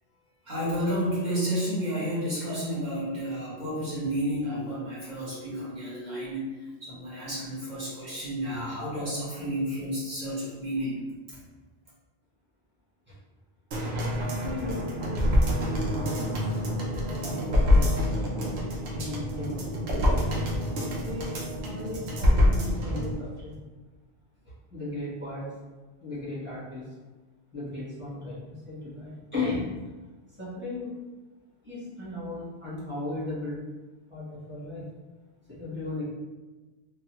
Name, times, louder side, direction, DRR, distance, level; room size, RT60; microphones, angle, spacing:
voice 1, 0.5-6.5 6.8-11.0, equal, 45° right, -9 dB, 1.5 m, -31 dB
sound 1, 13.7-23.1 23.5-23.6, left 1 dB, 85° right, 0.9 m, -26 dB
voice 2, 14.4-15.2 15.8-16.3 16.7-17.9 18.9-20.1 20.6-21.4 21.6-23.6 24.7-25.5 26.0-26.8 27.5-29.7 30.4-30.9 31.6-33.6 34.1-34.8 35.5-36.0, left 2 dB, 10° right, -10 dB, 1.1 m, -36 dB
3.0 x 2.3 x 3.0 m, 1.2 s
omnidirectional pair, 1.1 m